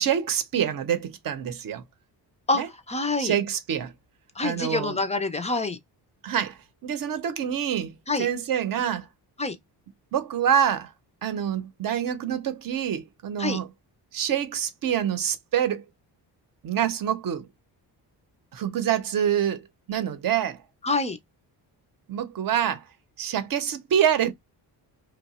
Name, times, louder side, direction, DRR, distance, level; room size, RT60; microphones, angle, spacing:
voice 1, 0.0-1.8 2.5-2.7 3.2-3.9 4.4-5.0 6.2-9.1 10.1-10.9 11.2-13.7 14.1-15.8 16.6-17.5 18.5-20.6 22.1-22.8 23.2-24.3, right 9 dB, 55° right, 0.7 m, -26 dB
voice 2, 2.5-3.3 4.4-5.8 8.1-8.3 9.4-9.6 13.4-13.6 20.8-21.2, left 3 dB, 15° left, 0.4 m, -26 dB
2.8 x 2.1 x 4.0 m
cardioid pair, 140°, 42 cm